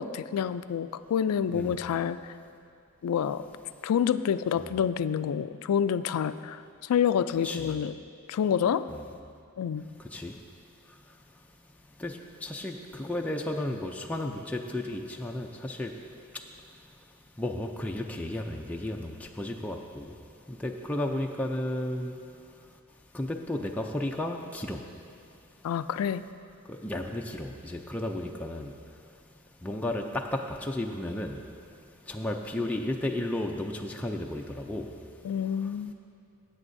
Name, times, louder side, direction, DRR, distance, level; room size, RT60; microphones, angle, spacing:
voice 1, 0.0-2.2 3.0-3.5 3.8-7.9 8.3-8.9 9.6-9.8 25.6-26.2 35.2-35.9, left 8 dB, 80° left, 14 dB, 0.3 m, -28 dB
voice 2, 10.0-10.4 10.8-11.4 12.0-20.2 20.5-22.7 23.1-25.2 26.7-29.2 29.6-35.0 35.5-35.8, left 1 dB, 5° left, 1 dB, 0.4 m, -34 dB
16.0 x 8.4 x 2.6 m, 2.4 s
head